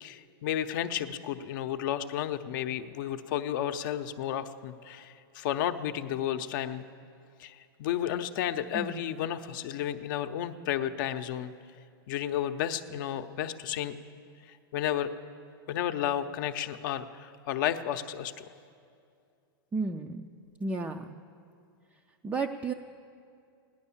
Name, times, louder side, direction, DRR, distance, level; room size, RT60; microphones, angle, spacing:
voice 1, 0.0-6.8 7.4-11.5 12.1-13.9 14.5-15.1 15.7-18.4, left 10 dB, 55° left, 8 dB, 0.6 m, -32 dB
voice 2, 8.7-9.1 19.7-20.3 20.6-21.2 22.2-22.7, right 3 dB, 10° right, 5 dB, 0.4 m, -33 dB
16.5 x 10.5 x 7.1 m, 2.4 s
supercardioid pair, 150°, 13 cm